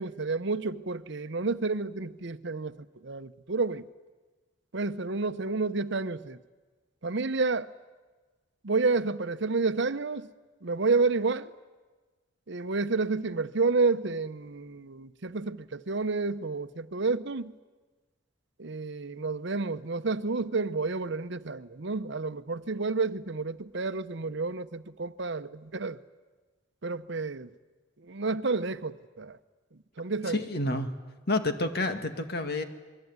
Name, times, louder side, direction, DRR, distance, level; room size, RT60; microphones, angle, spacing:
voice 1, 0.0-2.8 3.0-3.8 4.7-6.4 7.0-7.7 8.6-10.3 10.6-11.5 12.5-17.5 18.6-26.0 26.8-27.5 28.0-29.4 30.0-30.4, right 3 dB, 65° right, 0.9 m, -30 dB
voice 2, 30.3-30.9 31.3-32.6, left 2 dB, 55° left, 2.1 m, -29 dB
27.0 x 22.5 x 9.6 m
head